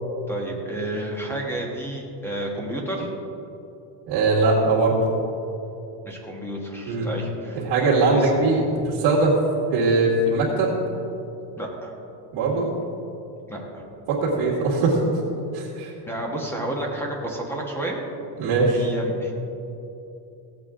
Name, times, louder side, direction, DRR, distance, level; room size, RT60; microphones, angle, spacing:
voice 1, 0.3-3.1 6.0-7.6 8.1-8.3 11.6-11.9 13.5-13.8 16.0-18.0 18.7-19.3, right 1 dB, 5° left, -1 dB, 1.4 m, -31 dB
voice 2, 4.1-5.0 6.9-7.1 7.5-9.4 9.7-10.7 12.3-12.7 14.1-15.0 15.5-15.9 18.4-18.8, right 3 dB, 50° right, -8 dB, 2.4 m, -21 dB
17.0 x 8.2 x 3.8 m, 2.9 s
cardioid pair, 155°, 50 cm